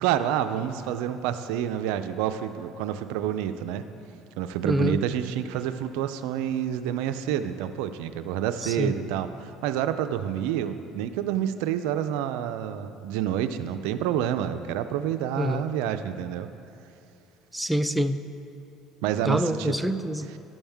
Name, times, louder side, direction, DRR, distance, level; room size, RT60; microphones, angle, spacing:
voice 1, 0.0-3.8 4.4-16.5 19.0-19.7, right 10 dB, 85° right, 10 dB, 0.4 m, -28 dB
voice 2, 4.6-5.0 8.6-9.0 15.4-15.7 17.5-18.2 19.2-20.3, equal, 5° right, 10 dB, 0.4 m, -26 dB
12.0 x 7.1 x 3.5 m, 2.7 s
supercardioid pair, 100°, 0 cm